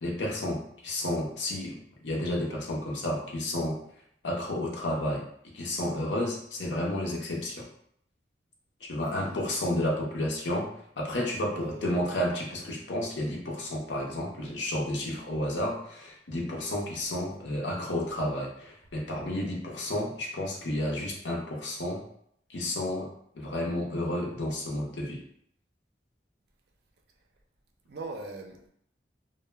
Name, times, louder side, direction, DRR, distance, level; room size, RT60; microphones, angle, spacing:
voice 1, 0.0-3.8 4.2-5.2 5.5-7.7 8.8-22.0 22.5-23.1 23.3-25.2, left 1 dB, 90° left, -1 dB, 0.6 m, -31 dB
voice 2, 11.5-12.1 27.9-28.7, right 2 dB, 65° right, 3 dB, 0.4 m, -41 dB
2.1 x 2.1 x 3.2 m, 0.69 s
head